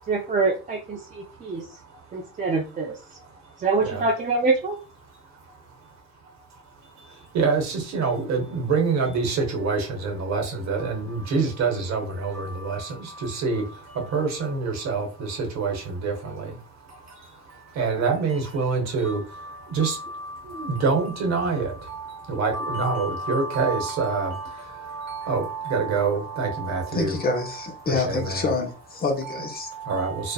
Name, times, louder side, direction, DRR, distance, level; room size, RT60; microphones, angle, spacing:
voice 1, 0.1-1.7 2.1-3.0 3.6-4.8, right 3 dB, 25° right, 0.4 m, -25 dB
voice 2, 1.1-2.0 3.4-3.5 3.8-4.0 5.5-5.6 6.9-27.3 27.8-28.5 29.2-30.3, right 4 dB, 55° right, 1.0 m, -27 dB
voice 3, 26.9-29.7, left 3 dB, 30° left, 0.6 m, -27 dB
2.6 x 2.0 x 2.3 m
supercardioid pair, 80°, 32 cm